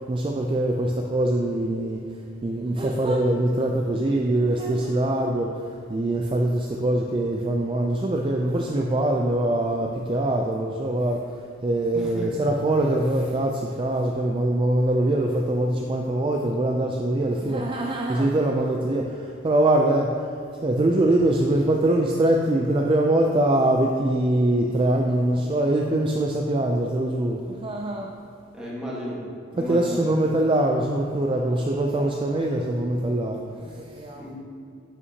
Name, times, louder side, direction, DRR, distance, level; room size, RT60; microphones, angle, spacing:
voice 1, 0.1-2.0 2.4-5.5 5.9-11.2 11.6-20.1 20.6-28.1 29.6-34.2, right 1 dB, 25° right, 1 dB, 0.3 m, -23 dB
voice 2, 11.9-12.5 28.5-29.2 29.5-30.0 34.1-34.3, left 1 dB, 5° right, -6 dB, 1.4 m, -33 dB
9.4 x 5.5 x 2.8 m, 2.3 s
head